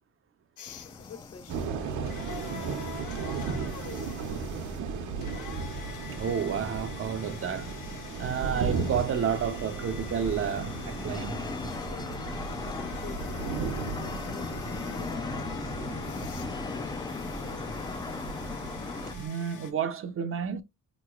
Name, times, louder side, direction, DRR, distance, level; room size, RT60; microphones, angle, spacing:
sound 1, 0.6-19.7, left 9 dB, 80° left, 0.7 m, -46 dB
sound 2, 0.7-19.1, left 4 dB, 15° left, 0.3 m, -39 dB
voice 1, 0.8-4.8 12.7-18.1, left 4 dB, 55° left, 1.3 m, -50 dB
sound 3, 1.5-19.3, right 5 dB, 75° right, 0.8 m, -36 dB
voice 2, 6.1-7.8 8.2-11.4 19.1-20.6, right 7 dB, 45° right, 0.5 m, -30 dB
4.0 x 3.0 x 2.3 m
cardioid pair, 90°, 30 cm